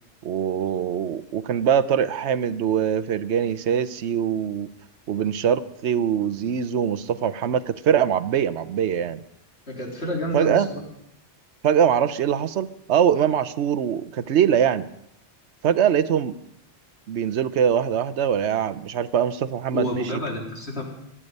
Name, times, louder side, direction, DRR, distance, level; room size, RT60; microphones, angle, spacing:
voice 1, 0.2-4.7 5.1-9.2 10.3-10.7 11.6-14.9 15.6-16.4 17.1-20.0, right 8 dB, 85° right, 14 dB, 1.0 m, -22 dB
voice 2, 9.7-10.8 19.7-20.8, left 1 dB, 70° left, -1 dB, 3.6 m, -29 dB
25.0 x 8.7 x 5.3 m, 0.76 s
omnidirectional pair, 1.1 m